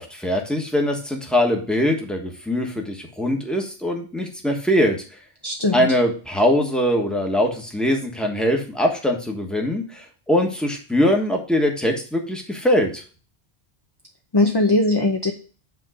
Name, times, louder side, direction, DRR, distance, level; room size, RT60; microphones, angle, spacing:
voice 1, 0.0-5.0 5.7-13.0, left 1 dB, ahead, 1 dB, 1.3 m, -22 dB
voice 2, 5.4-5.9 14.3-15.3, left 2 dB, 25° left, 3 dB, 0.6 m, -20 dB
8.0 x 3.6 x 5.0 m, 0.37 s
omnidirectional pair, 1.2 m